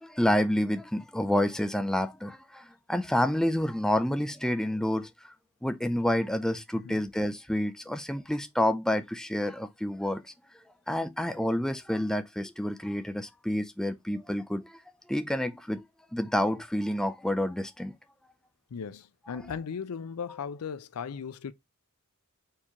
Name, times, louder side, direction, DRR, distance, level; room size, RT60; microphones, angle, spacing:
voice 1, 0.0-5.1 5.6-10.2 10.9-14.8 15.1-15.8 16.1-17.9, left 1 dB, 5° left, 0.3 m, -28 dB
voice 2, 18.7-21.5, left 6 dB, 85° left, 0.5 m, -37 dB
4.5 x 2.9 x 3.5 m
head